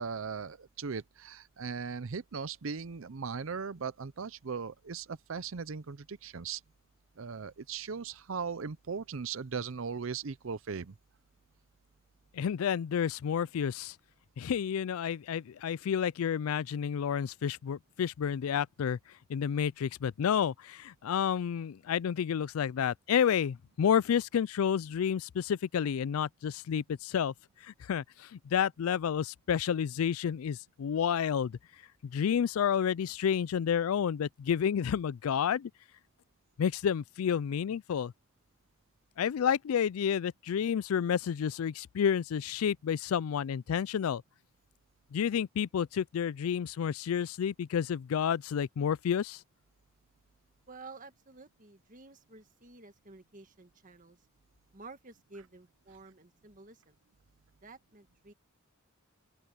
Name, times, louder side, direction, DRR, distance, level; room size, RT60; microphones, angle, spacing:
voice 1, 0.0-6.6 7.2-10.9, right 5 dB, 65° right, 0.6 m, -38 dB
voice 2, 12.3-13.9 14.4-19.0 19.3-27.3 27.6-31.6 32.0-35.7 36.6-38.1 39.2-44.2 45.1-49.4, left 8 dB, 85° left, 0.4 m, -30 dB
voice 3, 50.7-54.2 54.7-57.0 57.6-58.3, right 3 dB, 40° right, 1.8 m, -52 dB
open air
head